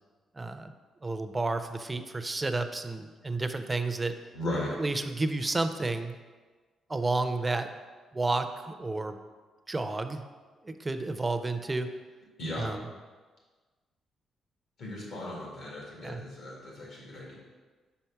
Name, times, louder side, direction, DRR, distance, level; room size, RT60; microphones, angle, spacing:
voice 1, 0.4-0.7 1.0-4.1 4.8-6.2 6.9-7.7 8.1-9.2 9.7-10.2 10.6-11.9 12.5-12.9 16.0-16.2, right 2 dB, 15° right, 8 dB, 0.4 m, -31 dB
voice 2, 4.3-4.7 12.4-12.7 14.8-17.3, left 1 dB, 65° left, -4 dB, 2.1 m, -36 dB
5.8 x 4.5 x 5.8 m, 1.4 s
cardioid pair, 140°, 0 cm